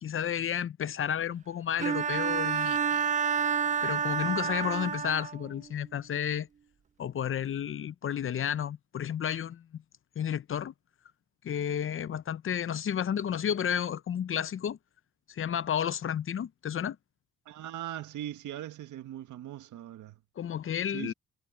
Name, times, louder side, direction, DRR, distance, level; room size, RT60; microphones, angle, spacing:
voice 1, 0.0-3.0 3.8-6.5 7.0-9.8 10.2-10.7 11.4-14.8 15.3-17.0 20.4-21.1, left 9 dB, 45° left, 0.7 m, -32 dB
Bowed string instrument, 1.8-5.5, right 7 dB, 25° right, 0.4 m, -29 dB
voice 2, 17.5-20.2 20.9-21.1, right 12 dB, 80° right, 1.9 m, -40 dB
cardioid pair, 90°, 30 cm